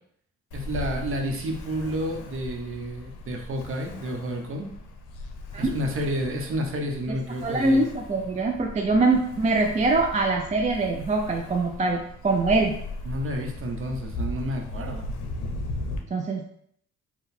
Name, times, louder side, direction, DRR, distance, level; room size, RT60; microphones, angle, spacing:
Ocean, 0.5-16.0, left 2 dB, 85° left, 0.7 m, -37 dB
voice 1, 0.5-4.7 5.6-7.9 13.0-15.1, equal, 45° right, 2 dB, 0.9 m, -30 dB
voice 2, 7.4-12.7 16.1-16.4, right 3 dB, 25° right, 1 dB, 0.4 m, -23 dB
3.9 x 2.3 x 4.2 m, 0.68 s
cardioid pair, 90°, 30 cm